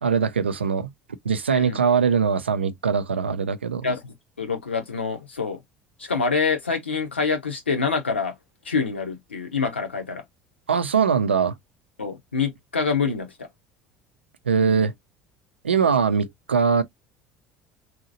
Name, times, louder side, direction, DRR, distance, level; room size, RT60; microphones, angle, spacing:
voice 1, 0.0-0.9 1.2-3.9 10.7-11.5 14.5-14.9 15.6-16.8, right 6 dB, 85° right, 0.3 m, -21 dB
voice 2, 3.8-5.6 6.0-8.4 8.6-10.2 12.0-13.5 15.8-16.0, left 5 dB, 85° left, 0.7 m, -26 dB
2.8 x 2.6 x 2.6 m
figure-of-eight pair, 65°, 6 cm